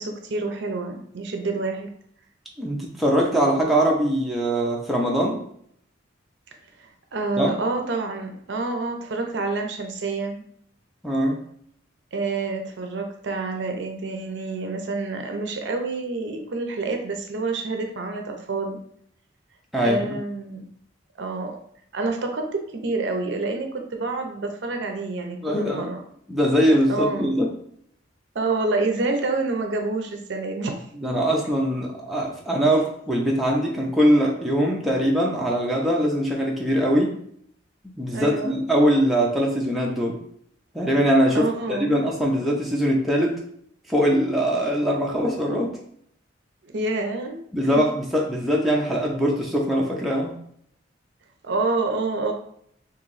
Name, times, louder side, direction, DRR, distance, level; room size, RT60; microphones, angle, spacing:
voice 1, 0.0-1.9 6.8-10.4 12.1-18.8 19.8-20.7 21.2-21.6 21.9-26.0 26.9-27.3 28.3-30.8 38.1-38.6 41.3-42.0 46.6-47.9 51.4-52.3, right 3 dB, 60° right, 4 dB, 0.5 m, -28 dB
voice 2, 2.6-5.4 7.4-7.5 11.0-11.4 19.7-20.0 25.4-25.9 26.3-27.5 31.0-37.2 38.0-40.2 40.7-43.4 43.9-45.7 47.5-50.3, equal, ahead, -3 dB, 0.4 m, -22 dB
3.0 x 2.6 x 3.9 m, 0.67 s
head